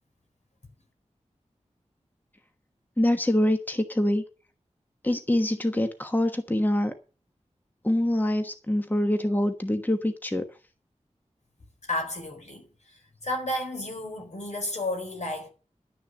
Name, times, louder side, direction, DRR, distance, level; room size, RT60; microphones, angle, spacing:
voice 1, 3.0-4.2 5.0-6.9 7.8-10.4, left 1 dB, 15° left, 1.2 m, -25 dB
voice 2, 11.9-15.5, left 1 dB, 70° left, 4.3 m, -32 dB
11.5 x 6.5 x 7.4 m
wide cardioid pair, 80°, 12 cm